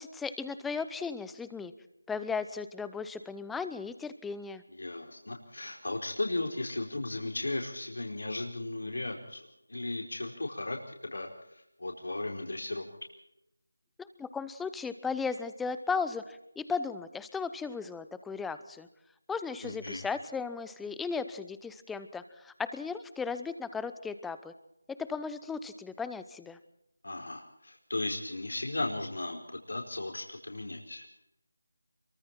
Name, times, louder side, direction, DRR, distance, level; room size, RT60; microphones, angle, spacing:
voice 1, 0.0-1.7 2.1-4.6 14.0-18.9 19.3-24.5 25.1-26.6, left 5 dB, 5° left, 12 dB, 0.7 m, -36 dB
voice 2, 4.7-12.8 19.6-20.0 27.0-29.4 29.7-31.1, left 2 dB, 70° left, 2 dB, 4.7 m, -36 dB
26.5 x 23.5 x 4.4 m, 0.84 s
figure-of-eight pair, 165°, 0 cm